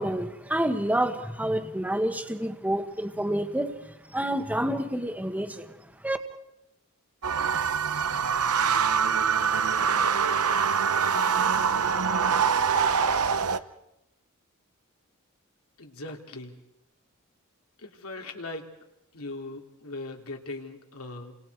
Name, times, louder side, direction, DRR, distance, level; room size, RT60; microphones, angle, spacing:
voice 1, 0.0-3.7 4.1-5.7 6.0-6.2, right 1 dB, 5° right, 7 dB, 1.4 m, -28 dB
sound 1, 7.2-13.6, right 6 dB, 90° right, 0.9 m, -24 dB
voice 2, 15.8-16.6 17.8-18.7 19.1-21.3, left 2 dB, 80° left, 3 dB, 2.8 m, -39 dB
29.5 x 26.0 x 4.7 m, 0.89 s
head